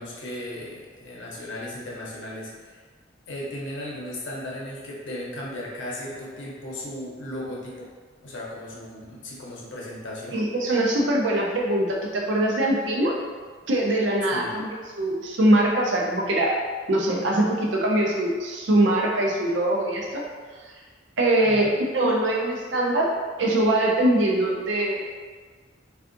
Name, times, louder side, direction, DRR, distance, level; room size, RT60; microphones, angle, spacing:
voice 1, 0.0-2.8 3.3-7.9 8.2-10.4 14.3-14.5 21.4-21.8, left 1 dB, 85° left, -4 dB, 0.6 m, -36 dB
voice 2, 10.3-13.2 13.7-14.7 15.0-16.5 16.9-20.2 21.2-23.1 23.4-25.0, right 1 dB, 75° right, -1 dB, 0.5 m, -22 dB
3.5 x 2.3 x 2.5 m, 1.5 s
head